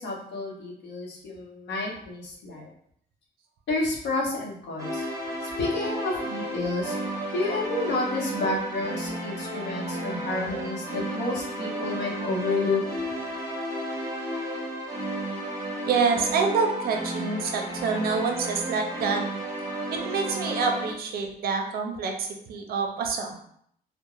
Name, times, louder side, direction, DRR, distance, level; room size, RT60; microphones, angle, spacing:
voice 1, 0.0-2.7 3.7-5.1 5.4-7.0 7.3-12.8, left 2 dB, 90° left, -2 dB, 0.7 m, -30 dB
sound 1, 4.8-20.9, right 1 dB, 15° right, 0.7 m, -33 dB
voice 2, 15.9-19.2 19.9-23.4, right 5 dB, 60° right, 3 dB, 0.5 m, -27 dB
3.0 x 2.0 x 2.3 m, 0.67 s
cardioid pair, 165°, 17 cm